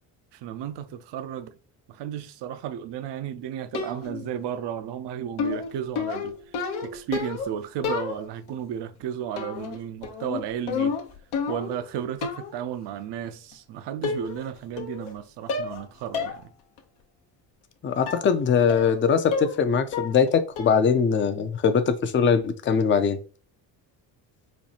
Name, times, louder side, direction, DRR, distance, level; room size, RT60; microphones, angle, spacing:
voice 1, 0.3-1.6 1.9-6.4 6.8-11.0 11.5-16.5, right 9 dB, 60° right, 0.6 m, -33 dB
sound 1, 3.7-4.3 5.4-7.5 7.8-8.5 9.4-9.8 10.0-11.8 12.2-12.6 13.5-13.6 14.0-14.5 14.8-15.2 15.5-15.8 16.1-16.4 16.8-16.9 18.1-18.3 18.7-19.0 19.3-19.6 19.9-20.3 20.6-20.9, left 5 dB, 75° left, 0.9 m, -30 dB
voice 2, 17.8-23.2, left 6 dB, 25° left, 0.5 m, -22 dB
4.5 x 2.3 x 2.8 m
hypercardioid pair, 55°, 49 cm